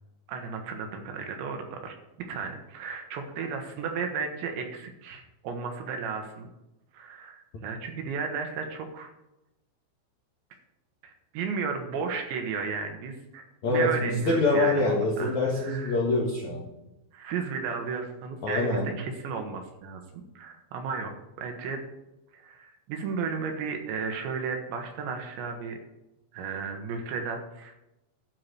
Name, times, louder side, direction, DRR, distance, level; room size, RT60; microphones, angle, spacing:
voice 1, 0.3-6.5 6.9-9.1 11.0-16.0 17.1-21.8 22.3-25.8 26.3-27.7, right 5 dB, 70° right, 4 dB, 3.2 m, -34 dB
voice 2, 13.6-16.6 18.4-18.9, left 2 dB, 60° left, -3 dB, 1.9 m, -25 dB
12.0 x 4.8 x 8.3 m, 0.95 s
omnidirectional pair, 5.7 m